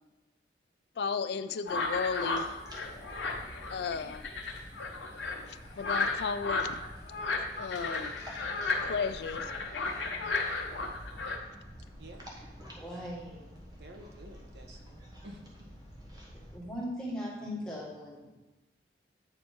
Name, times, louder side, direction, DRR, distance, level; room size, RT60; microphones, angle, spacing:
voice 1, 1.0-2.4 3.7-4.3 5.5-6.8 7.6-8.1 8.9-9.5, left 5 dB, 65° left, 12 dB, 0.3 m, -34 dB
sound 1, 1.7-11.4, left 3 dB, 90° left, 1.0 m, -34 dB
sound 2, 2.3-16.6, equal, 20° right, 1.2 m, -49 dB
voice 2, 12.0-12.3 13.7-15.7, right 1 dB, 70° right, 3 dB, 1.1 m, -51 dB
voice 3, 12.7-13.4 16.5-18.4, equal, 5° left, -7 dB, 1.9 m, -39 dB
8.7 x 4.2 x 4.5 m, 1.1 s
head